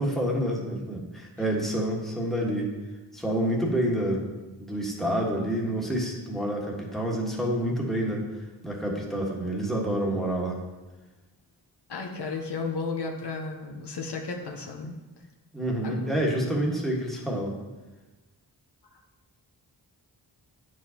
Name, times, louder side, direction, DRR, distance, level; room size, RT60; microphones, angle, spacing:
voice 1, 0.0-2.7 3.1-4.2 4.6-8.2 8.6-10.6 15.5-17.6, right 1 dB, ahead, -2 dB, 1.4 m, -28 dB
voice 2, 11.9-15.0 15.8-16.0, left 4 dB, 70° left, 2 dB, 0.9 m, -33 dB
9.1 x 4.7 x 2.8 m, 1.2 s
cardioid pair, 60°, 42 cm